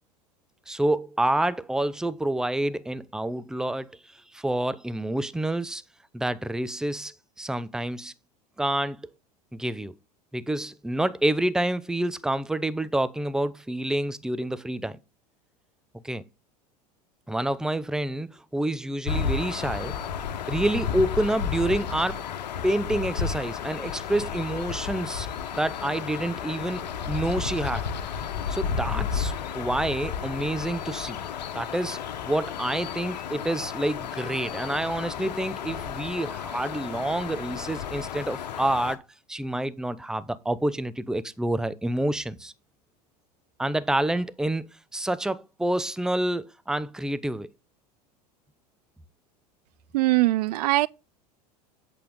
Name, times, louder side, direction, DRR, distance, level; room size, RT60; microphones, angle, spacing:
voice 1, 0.7-5.8 6.1-8.1 8.6-9.1 9.5-9.9 10.3-15.0 16.0-16.2 17.3-19.9 20.5-22.2 22.6-25.3 25.5-27.9 28.5-31.2 31.5-39.0 39.3-42.5 43.6-44.7 44.9-47.5, right 1 dB, 5° right, 0.6 m, -28 dB
sound 1, 19.1-39.0, left 7 dB, 80° left, 1.2 m, -32 dB
voice 2, 49.9-50.9, right 18 dB, 70° right, 0.4 m, -21 dB
8.4 x 6.8 x 3.7 m
hypercardioid pair, 90°, 21 cm